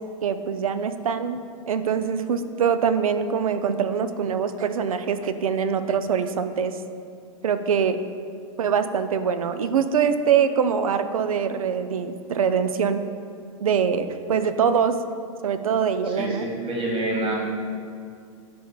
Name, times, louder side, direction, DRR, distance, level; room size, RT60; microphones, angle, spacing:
voice 1, 0.2-1.4 1.7-6.8 7.4-8.0 8.6-13.0 13.6-15.0 15.4-16.5, right 7 dB, 85° right, 11 dB, 0.4 m, -23 dB
voice 2, 16.1-17.4, right 1 dB, 30° right, -2 dB, 1.5 m, -27 dB
11.0 x 5.1 x 2.2 m, 2.3 s
hypercardioid pair, 100°, 18 cm